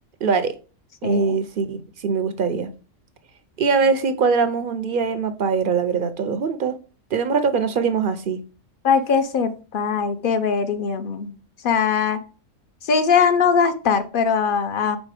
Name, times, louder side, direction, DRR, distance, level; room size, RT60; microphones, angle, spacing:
voice 1, 0.2-0.5 1.0-2.7 3.6-6.8 7.1-8.4, right 5 dB, 55° right, 0.6 m, -22 dB
voice 2, 1.0-1.4 8.8-11.3 11.6-12.2 12.8-15.0, left 6 dB, 55° left, 0.7 m, -21 dB
5.2 x 4.1 x 4.8 m
omnidirectional pair, 1.3 m